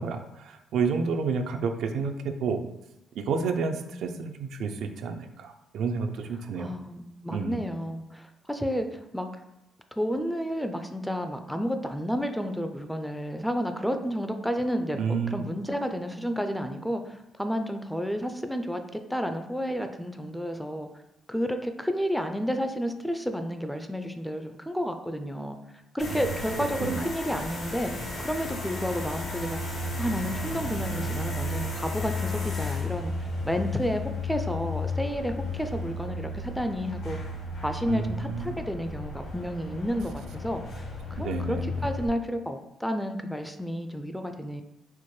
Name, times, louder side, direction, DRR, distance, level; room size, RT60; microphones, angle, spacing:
voice 1, 0.0-2.6 3.2-6.8 7.3-7.6 15.0-15.4 26.1-27.1 37.9-38.4 41.1-41.8, right 5 dB, 75° right, 6 dB, 0.3 m, -30 dB
voice 2, 3.5-4.2 6.6-9.3 10.0-20.9 21.3-25.6 25.9-27.9 28.2-29.6 30.0-33.1 33.4-37.2 37.6-40.8 41.1-44.6, equal, ahead, 7 dB, 0.3 m, -31 dB
sound 1, 26.0-42.1, left 2 dB, 65° left, 1.3 m, -34 dB
4.3 x 2.1 x 3.1 m, 0.88 s
cardioid pair, 90°, 0 cm